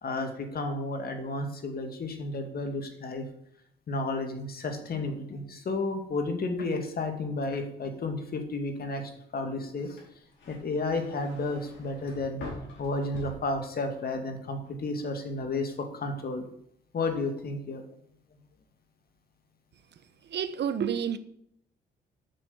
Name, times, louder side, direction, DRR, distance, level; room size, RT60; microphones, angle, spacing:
voice 1, 0.0-3.2 3.9-10.0 10.5-12.4 12.8-16.4 16.9-17.8, left 2 dB, 50° left, 2.4 m, -32 dB
sound 1, 10.0-14.1 14.4-15.0, left 2 dB, 65° left, 4.8 m, -45 dB
voice 2, 20.3-21.2, right 8 dB, 60° right, 1.0 m, -29 dB
8.9 x 6.3 x 8.5 m
cardioid pair, 90°, 20 cm